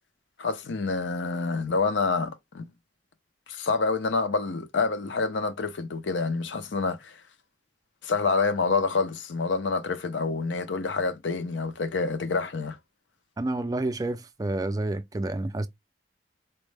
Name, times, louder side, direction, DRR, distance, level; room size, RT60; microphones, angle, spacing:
voice 1, 0.4-2.7 3.5-7.2 8.0-12.8, left 4 dB, 85° left, 0.6 m, -27 dB
voice 2, 13.4-15.7, right 2 dB, 20° right, 0.3 m, -29 dB
4.2 x 2.1 x 3.2 m
head